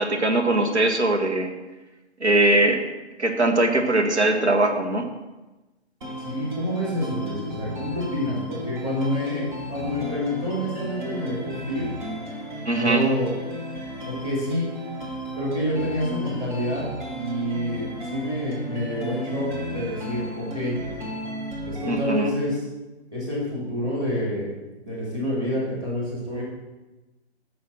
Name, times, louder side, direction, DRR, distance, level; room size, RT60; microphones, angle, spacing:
voice 1, 0.0-1.5 2.2-2.8 3.2-5.1 12.6-13.0 21.9-22.3, right 2 dB, 75° right, 3 dB, 1.5 m, -21 dB
sound 1, 6.0-22.0, equal, 45° right, 2.0 m, -34 dB
voice 2, 6.2-11.9 12.7-13.3 14.0-14.7 15.4-16.8 17.1-20.7 21.6-22.6 23.1-24.5 24.8-26.4, left 1 dB, 15° right, -6 dB, 3.4 m, -28 dB
7.2 x 6.4 x 5.7 m, 1.1 s
figure-of-eight pair, 135°, 34 cm